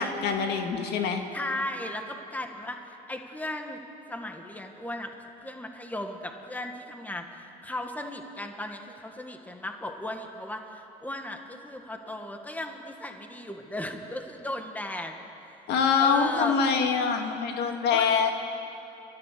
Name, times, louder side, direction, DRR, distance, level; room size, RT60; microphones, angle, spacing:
voice 1, 0.0-1.2 15.7-18.3, left 6 dB, 80° left, 4 dB, 2.1 m, -24 dB
voice 2, 1.3-3.8 4.1-5.1 5.4-15.2 16.0-16.6 17.9-18.3, left 1 dB, 10° left, 4 dB, 1.7 m, -36 dB
30.0 x 13.5 x 6.8 m, 2.9 s
cardioid pair, 110°, 17 cm